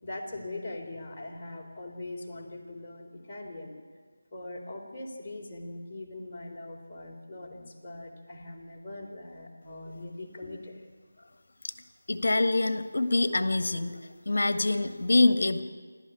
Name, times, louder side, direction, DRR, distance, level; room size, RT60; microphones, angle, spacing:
voice 1, 0.0-3.7 4.3-10.8, left 2 dB, 25° left, -3 dB, 3.8 m, -41 dB
voice 2, 12.1-14.0 14.2-15.6, left 2 dB, 60° left, 10 dB, 1.6 m, -25 dB
28.5 x 12.5 x 8.9 m, 1.5 s
figure-of-eight pair, 160°, 0 cm